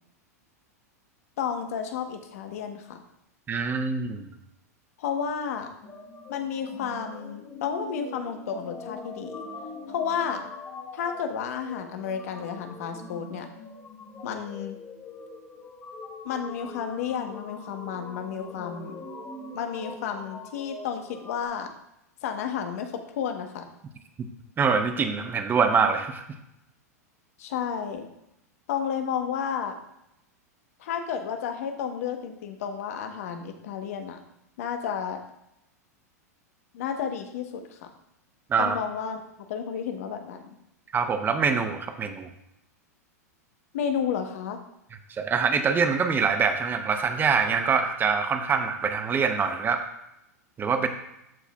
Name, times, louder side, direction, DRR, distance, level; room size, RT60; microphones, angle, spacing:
voice 1, 1.4-3.0 5.0-5.7 6.3-9.4 9.9-10.4 10.9-13.5 14.2-14.8 16.2-19.0 19.5-21.7 22.2-23.7 27.4-28.1 28.7-29.8 30.8-34.2 34.6-35.2 36.7-37.9 38.6-39.2 39.5-40.6 43.7-44.6, left 7 dB, 60° left, 7 dB, 1.0 m, -32 dB
voice 2, 3.5-4.3 24.6-26.2 38.5-38.8 40.9-42.3 45.1-49.8 50.6-50.9, right 5 dB, 20° right, 8 dB, 0.7 m, -24 dB
sound 1, 5.8-21.5, left 3 dB, 25° left, 1.6 m, -42 dB
13.5 x 4.6 x 2.3 m, 0.83 s
hypercardioid pair, 100°, 9 cm